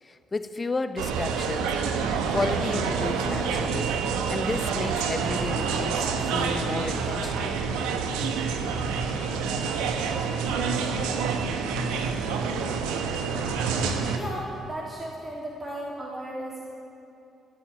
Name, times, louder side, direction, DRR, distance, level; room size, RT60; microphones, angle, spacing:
voice 1, 0.0-1.7 2.3-4.0 4.3-7.6, left 3 dB, 35° left, 9 dB, 1.1 m, -32 dB
sound 1, 1.0-14.2, right 5 dB, 80° right, 1.1 m, -27 dB
voice 2, 14.2-16.7, right 1 dB, 30° right, -4 dB, 3.2 m, -35 dB
16.5 x 9.3 x 9.3 m, 2.6 s
hypercardioid pair, 50°, 0 cm